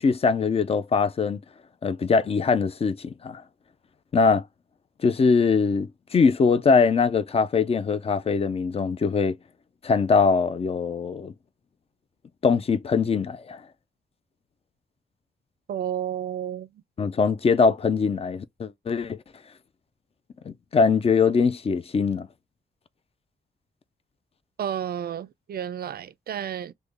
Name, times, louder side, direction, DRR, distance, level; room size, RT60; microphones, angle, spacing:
voice 1, 0.0-1.4 1.8-3.4 4.1-4.4 5.0-9.4 9.8-11.3 12.4-13.6 17.0-19.2 20.5-22.3, left 5 dB, 30° left, 0.4 m, -22 dB
voice 2, 15.7-16.7 24.6-26.7, right 9 dB, 50° right, 0.4 m, -31 dB
3.6 x 2.1 x 3.1 m
wide cardioid pair, 150°, 20 cm